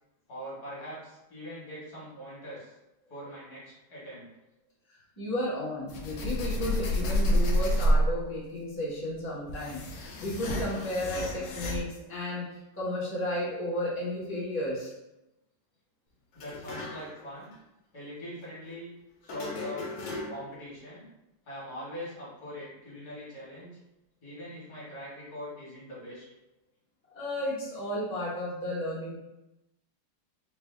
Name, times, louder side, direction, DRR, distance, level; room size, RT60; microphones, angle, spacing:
voice 1, 0.3-2.7 3.1-4.3 16.3-17.5 17.9-18.9 19.2-19.9 20.3-21.0 21.5-23.8 24.2-26.2, equal, 50° left, -7 dB, 1.6 m, -42 dB
voice 2, 5.2-14.9 27.1-29.2, left 1 dB, 15° left, -10 dB, 0.4 m, -33 dB
sound 1, 5.9-8.3 9.1-11.8, equal, 85° left, 0.8 m, -28 dB
sound 2, 16.3-17.3 17.5-17.6 19.2-20.6, left 2 dB, 70° left, 1.4 m, -39 dB
4.3 x 2.0 x 3.2 m, 0.93 s
omnidirectional pair, 2.4 m